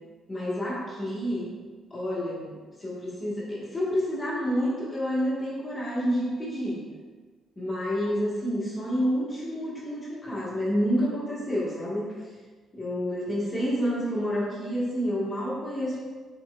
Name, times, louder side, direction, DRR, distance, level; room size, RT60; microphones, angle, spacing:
voice 1, 0.3-1.5 1.9-6.8 7.6-12.1 12.7-16.0, equal, 20° left, -8 dB, 1.5 m, -29 dB
4.4 x 4.1 x 2.4 m, 1.4 s
cardioid pair, 90°, 0 cm